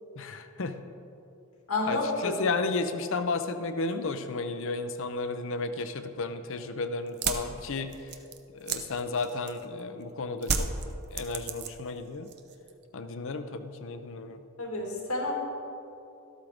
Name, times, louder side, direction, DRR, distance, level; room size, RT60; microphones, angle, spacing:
voice 1, 0.1-0.8 1.8-8.2 8.5-10.7 11.1-12.3 12.9-14.4, left 3 dB, 60° left, 9 dB, 0.7 m, -33 dB
voice 2, 1.7-2.6 14.6-15.3, left 2 dB, 90° left, -1 dB, 2.5 m, -30 dB
sound 1, 7.1-9.8 10.4-12.0 12.3-12.8, right 6 dB, 50° right, 0.7 m, -32 dB
13.0 x 12.5 x 3.6 m, 2.7 s
head